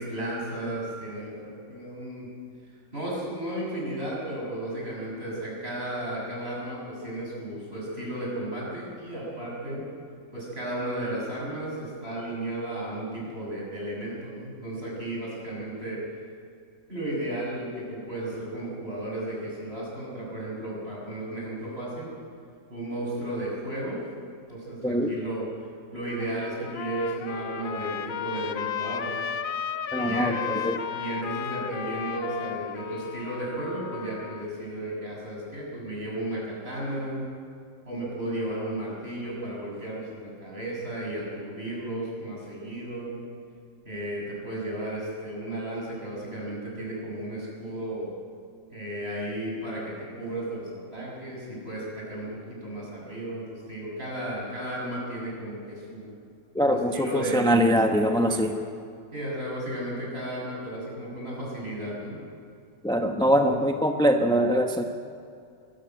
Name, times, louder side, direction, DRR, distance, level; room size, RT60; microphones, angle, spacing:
voice 1, 0.0-2.3 2.9-9.8 10.3-16.0 16.9-22.1 22.7-24.0 24.5-25.4 25.9-29.2 29.9-30.6 30.9-37.3 37.9-43.2 43.9-48.1 48.7-56.1 56.7-57.5 58.0-58.4 59.1-62.2 63.3-63.6, right 1 dB, 30° right, -4 dB, 7.3 m, -34 dB
voice 2, 24.8-25.1 29.9-30.8 56.5-58.6 62.8-64.8, equal, 5° left, 4 dB, 0.5 m, -23 dB
Trumpet, 26.0-34.5, left 8 dB, 60° left, 1.0 m, -34 dB
21.5 x 14.0 x 9.3 m, 2.4 s
omnidirectional pair, 2.0 m